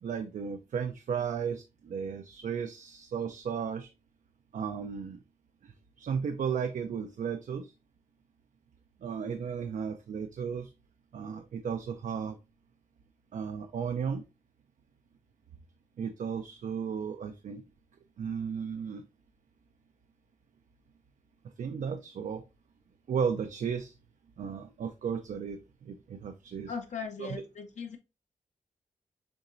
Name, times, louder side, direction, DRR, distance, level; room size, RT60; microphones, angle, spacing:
voice 1, 0.0-3.9 4.5-5.2 5.6-7.7 9.0-10.7 11.1-12.4 13.3-14.2 16.0-17.6 18.2-19.0 21.6-22.4 23.1-23.9 24.4-26.7 27.2-27.4, right 7 dB, 70° right, 7 dB, 0.5 m, -34 dB
voice 2, 26.7-28.0, left 5 dB, 60° left, 3 dB, 0.8 m, -38 dB
6.9 x 3.0 x 2.6 m, 0.27 s
wide cardioid pair, 95°, 13 cm